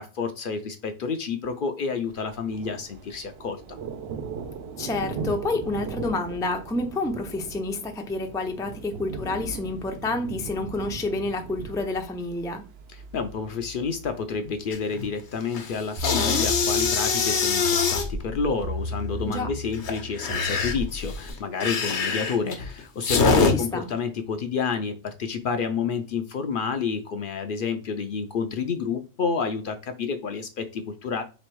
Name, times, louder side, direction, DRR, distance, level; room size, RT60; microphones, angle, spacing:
voice 1, 0.0-3.8 12.9-31.2, left 5 dB, 60° left, 0.6 m, -29 dB
Thunder, 2.1-17.7, right 5 dB, 70° right, 0.8 m, -39 dB
voice 2, 4.8-12.6 19.2-19.5 23.5-23.9, left 2 dB, 5° left, 0.3 m, -29 dB
sound 1, 14.7-15.1 15.4-18.1 19.7-23.5, left 5 dB, 90° left, 1.1 m, -24 dB
sound 2, 16.0-21.3, left 1 dB, 50° right, 1.2 m, -34 dB
3.3 x 3.1 x 4.5 m
omnidirectional pair, 1.1 m